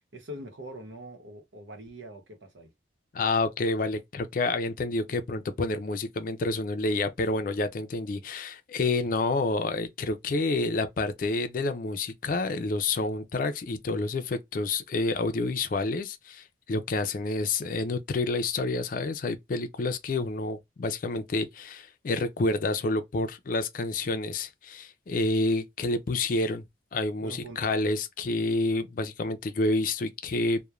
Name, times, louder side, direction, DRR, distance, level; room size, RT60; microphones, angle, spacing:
voice 1, 0.1-2.7 27.2-27.7, right 1 dB, 85° right, 0.9 m, -43 dB
voice 2, 3.1-26.7 26.9-30.6, left 2 dB, 45° left, 0.4 m, -29 dB
3.0 x 2.1 x 2.3 m
head